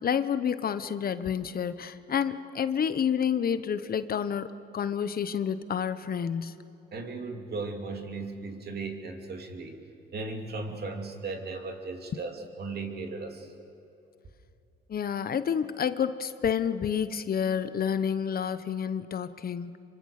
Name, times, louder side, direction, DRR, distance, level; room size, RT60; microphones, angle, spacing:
voice 1, 0.0-4.5 4.7-6.6 14.9-19.8, left 7 dB, 50° left, 12 dB, 0.9 m, -29 dB
voice 2, 6.9-9.8 10.1-13.5, right 3 dB, 55° right, 3 dB, 2.8 m, -36 dB
26.5 x 24.0 x 6.6 m, 2.9 s
cardioid pair, 90°, 20 cm